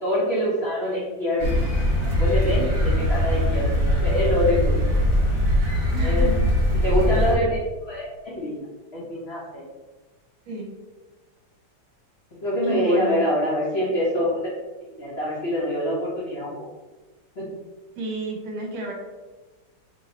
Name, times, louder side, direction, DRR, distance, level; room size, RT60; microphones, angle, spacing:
voice 1, 0.0-1.5 2.0-5.2 6.0-6.3 6.8-7.6 7.9-8.6 8.9-9.6 12.4-14.5 14.8-16.5 17.4-17.5, equal, 65° left, -6 dB, 0.6 m, -25 dB
sound 1, 1.4-7.4, equal, 50° right, 1.5 m, -21 dB
voice 2, 5.9-6.5 10.5-10.7 12.6-13.2 18.0-18.9, right 2 dB, 70° right, 0 dB, 1.4 m, -32 dB
3.2 x 2.6 x 4.1 m, 1.2 s
omnidirectional pair, 2.2 m